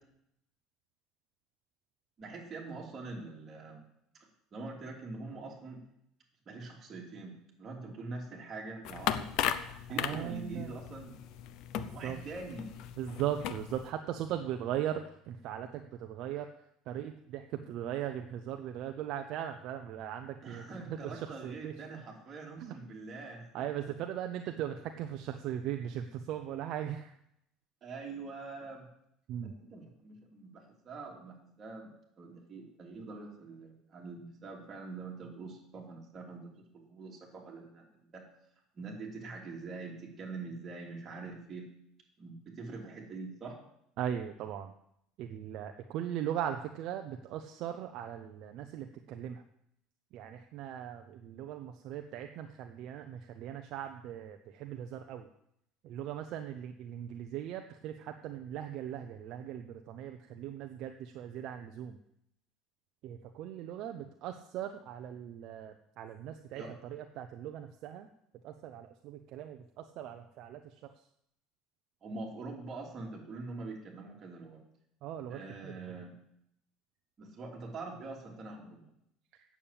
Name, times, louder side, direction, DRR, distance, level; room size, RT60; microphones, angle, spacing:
voice 1, 2.2-3.8 4.5-5.8 6.4-9.4 9.9-11.2 11.9-12.7 20.4-23.7 27.8-28.9 29.4-37.9 38.1-38.2 38.7-41.7 42.2-43.6 66.5-66.7 72.0-74.6 75.3-76.1 77.2-78.9, right 3 dB, 25° right, -2 dB, 2.9 m, -44 dB
sound 1, 8.8-13.9, left 10 dB, 55° left, 0.7 m, -37 dB
voice 2, 9.9-10.7 11.7-12.2 13.0-16.5 16.9-21.7 22.6-22.7 23.5-27.1 29.3-29.5 44.0-44.7 45.2-49.4 50.1-55.3 55.8-62.0 63.0-66.6 66.9-68.1 68.4-70.9 75.0-75.7, right 10 dB, 50° right, 6 dB, 0.7 m, -39 dB
8.9 x 7.2 x 8.7 m, 0.74 s
cardioid pair, 160°, 0 cm